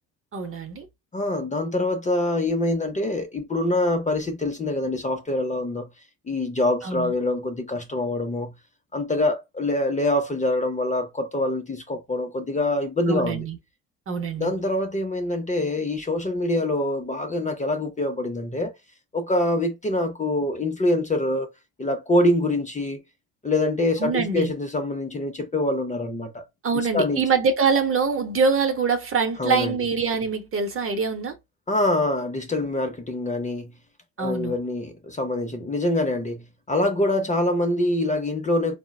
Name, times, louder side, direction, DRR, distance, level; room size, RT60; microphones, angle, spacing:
voice 1, 0.3-0.9 6.8-7.1 13.1-13.6 14.1-14.5 24.0-24.5 26.6-31.4 34.2-34.6, right 5 dB, 40° right, 0.7 m, -24 dB
voice 2, 1.1-5.9 6.3-8.5 8.9-13.5 14.4-18.7 19.1-21.5 21.8-23.0 23.4-26.4 26.7-27.2 29.4-29.8 31.7-33.7 34.2-38.8, left 1 dB, 20° left, 0.6 m, -25 dB
3.8 x 2.0 x 2.3 m
supercardioid pair, 80°, 35 cm